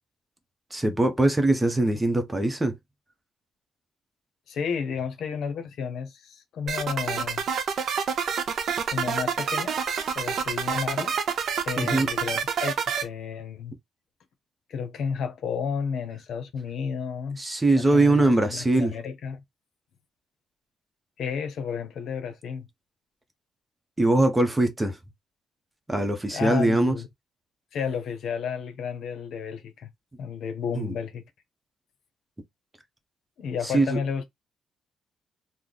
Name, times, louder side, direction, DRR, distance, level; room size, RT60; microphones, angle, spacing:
voice 1, 0.7-2.8 11.8-12.1 17.4-18.9 24.0-25.0 25.9-27.0 30.7-30.9 33.7-34.0, right 2 dB, 15° right, 0.8 m, -22 dB
voice 2, 4.5-7.4 8.9-11.2 11.6-13.8 14.7-19.4 21.2-22.7 26.3-27.1 27.7-29.9 30.2-31.2 33.4-34.2, left 6 dB, 70° left, 0.8 m, -32 dB
sound 1, 6.7-13.0, right 7 dB, 65° right, 0.7 m, -28 dB
3.1 x 2.1 x 3.9 m
cardioid pair, 90°, 0 cm